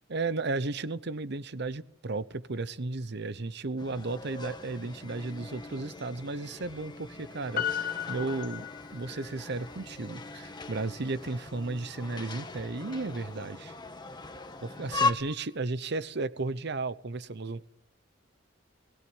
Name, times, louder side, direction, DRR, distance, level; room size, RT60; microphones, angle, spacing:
voice 1, 0.1-13.7 14.6-17.7, right 3 dB, 60° right, 15 dB, 0.9 m, -34 dB
sound 1, 3.8-15.1, left 3 dB, 25° left, 1.6 m, -38 dB
Piano, 7.6-9.3 9.7-9.8, left 10 dB, 50° left, 0.8 m, -34 dB
21.5 x 17.0 x 9.6 m, 0.82 s
head